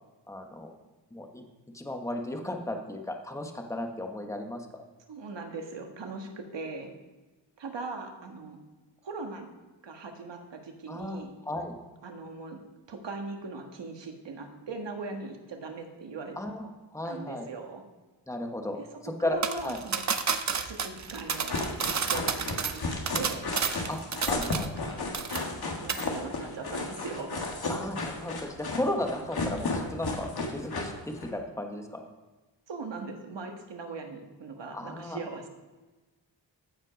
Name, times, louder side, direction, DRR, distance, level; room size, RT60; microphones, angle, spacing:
voice 1, 0.3-0.7 1.1-1.4 1.7-4.7 10.9-11.7 16.4-17.5 18.3-19.8 23.9-24.7 27.7-32.0 34.7-35.2, left 1 dB, 5° left, 3 dB, 1.1 m, -35 dB
voice 2, 5.1-6.9 7.6-8.6 9.0-9.5 9.8-11.3 12.0-12.6 12.9-16.4 17.0-17.8 18.8-18.9 19.2-20.0 20.6-23.5 25.8-27.4 32.7-35.5, right 3 dB, 70° right, 4 dB, 1.6 m, -40 dB
sound 1, 19.4-24.9 25.1-25.6 25.9-26.1, right 6 dB, 40° right, 0.7 m, -31 dB
sound 2, 21.3-31.3, left 3 dB, 55° left, 1.7 m, -33 dB
14.5 x 5.3 x 5.1 m, 1.2 s
wide cardioid pair, 105°, 45 cm